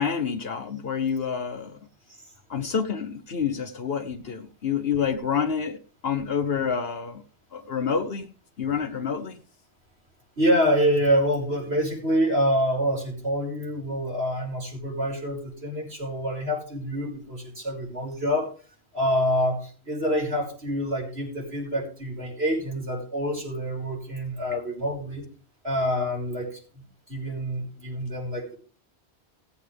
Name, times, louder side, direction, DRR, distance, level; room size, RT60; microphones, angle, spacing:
voice 1, 0.0-1.8 2.5-7.2 7.5-8.3 8.6-9.4, left 7 dB, 65° left, 1.2 m, -28 dB
voice 2, 10.4-18.5 18.9-25.3 25.6-28.6, equal, 65° right, 5.2 m, -26 dB
18.0 x 8.4 x 3.3 m
omnidirectional pair, 1.1 m